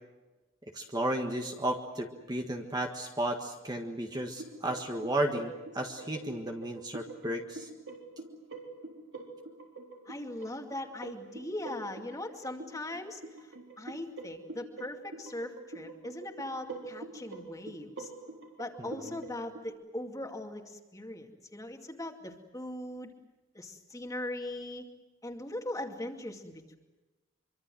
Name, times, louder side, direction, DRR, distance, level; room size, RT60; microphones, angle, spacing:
voice 1, 0.7-7.7, right 1 dB, 20° right, 3 dB, 1.6 m, -33 dB
sound 1, 4.1-19.7, right 3 dB, 60° right, 3.6 m, -46 dB
voice 2, 10.0-18.1 18.6-23.1 23.5-24.9 25.2-26.8, left 1 dB, 15° left, 3 dB, 2.4 m, -40 dB
25.0 x 24.5 x 7.8 m, 1.1 s
head